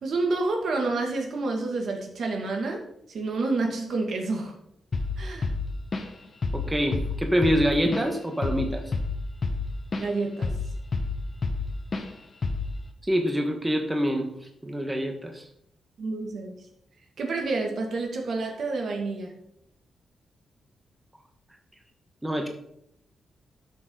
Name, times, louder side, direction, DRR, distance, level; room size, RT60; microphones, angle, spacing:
voice 1, 0.0-2.8 3.1-4.6 5.2-5.5 10.0-10.5 16.0-16.5 17.2-19.3, right 3 dB, 65° right, 2 dB, 2.2 m, -29 dB
Drum kit / Drum, 4.9-5.2 5.4-6.2 6.4-6.7 6.9-10.1 10.4-11.7 11.9-12.1 12.4-12.8, left 4 dB, 40° left, 1.3 m, -28 dB
voice 2, 6.5-8.9 13.1-15.5 22.2-22.5, equal, 10° right, 3 dB, 1.2 m, -26 dB
12.5 x 6.3 x 3.9 m, 0.76 s
cardioid pair, 105°, 0 cm